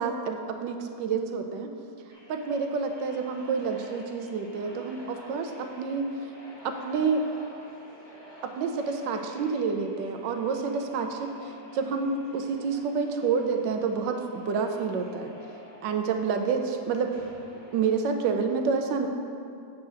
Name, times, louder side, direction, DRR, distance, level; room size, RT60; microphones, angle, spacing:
voice 1, 0.0-1.7 2.3-6.1 6.6-7.2 8.4-15.3 15.8-17.1 17.7-19.1, right 5 dB, 85° right, 5 dB, 1.3 m, -28 dB
sound 1, 2.1-18.2, left 1 dB, 20° left, 0.9 m, -50 dB
8.7 x 3.7 x 6.2 m, 2.5 s
omnidirectional pair, 1.9 m